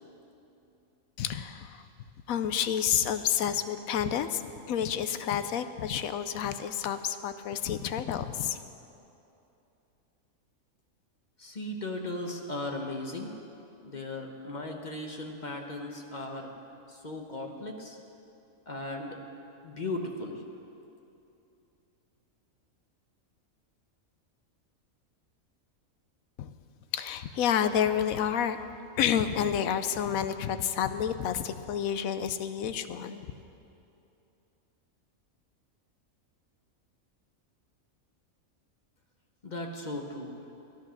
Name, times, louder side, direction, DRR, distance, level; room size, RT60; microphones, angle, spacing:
voice 1, 1.2-1.8 2.3-8.6 26.4-26.5 26.9-28.6 29.0-33.3, left 9 dB, 80° left, 11 dB, 1.1 m, -29 dB
voice 2, 11.4-13.4 13.8-16.5 16.9-18.0 18.7-19.2 19.6-20.4 39.4-40.3, left 2 dB, 35° left, 2 dB, 1.0 m, -37 dB
14.0 x 10.5 x 6.3 m, 2.8 s
omnidirectional pair, 1.4 m